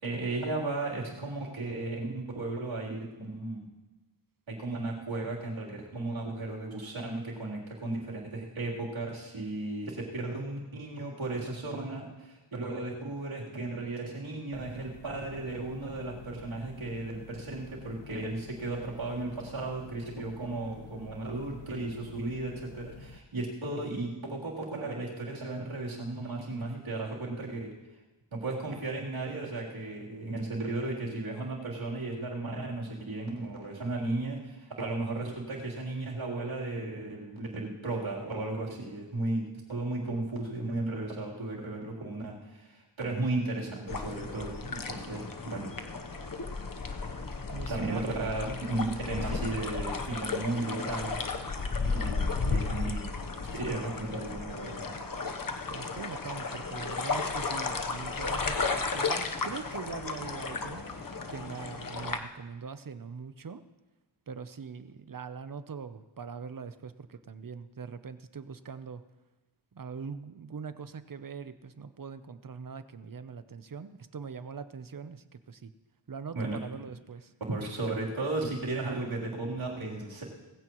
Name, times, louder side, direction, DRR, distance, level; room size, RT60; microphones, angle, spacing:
voice 1, 0.0-3.7 4.5-27.7 28.3-39.4 39.7-45.7 47.7-51.2 51.8-53.0 53.5-54.8 76.3-76.6 77.5-80.2, right 2 dB, 85° right, -4 dB, 3.6 m, -35 dB
sound 1, 14.5-23.2, left 4 dB, 80° left, 1.0 m, -49 dB
sound 2, 43.9-62.2, left 4 dB, 45° left, 1.1 m, -34 dB
voice 2, 47.5-48.1 55.7-60.8 61.3-63.6 64.3-69.0 69.7-75.7 76.1-77.3, right 5 dB, 45° right, 11 dB, 0.8 m, -42 dB
19.5 x 15.5 x 3.1 m, 1.1 s
wide cardioid pair, 105°, 46 cm